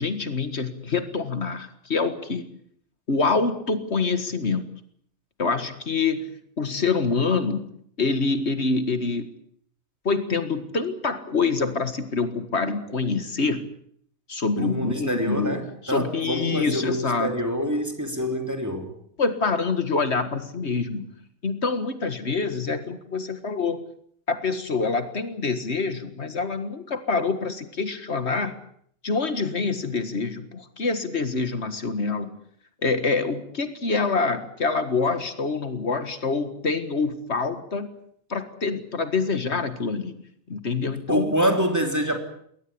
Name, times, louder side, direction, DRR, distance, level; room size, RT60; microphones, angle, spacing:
voice 1, 0.0-2.5 3.1-4.7 5.4-6.3 6.6-7.7 8.0-9.3 10.1-13.7 14.3-17.3 19.2-21.1 21.4-23.8 24.3-28.6 29.0-32.3 32.8-37.9 38.3-40.2 40.5-41.3, left 4 dB, 75° left, 10 dB, 2.0 m, -26 dB
voice 2, 14.6-18.9 41.1-42.2, equal, 15° right, 5 dB, 3.3 m, -26 dB
22.0 x 18.5 x 8.7 m, 0.65 s
omnidirectional pair, 1.2 m